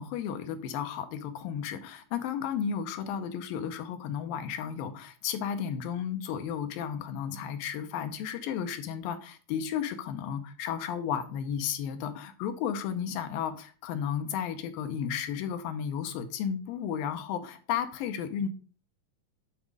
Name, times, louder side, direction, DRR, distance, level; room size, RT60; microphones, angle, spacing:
voice 1, 0.0-18.5, left 8 dB, 85° left, 8 dB, 2.6 m, -33 dB
9.5 x 4.1 x 4.8 m, 0.38 s
omnidirectional pair, 4.0 m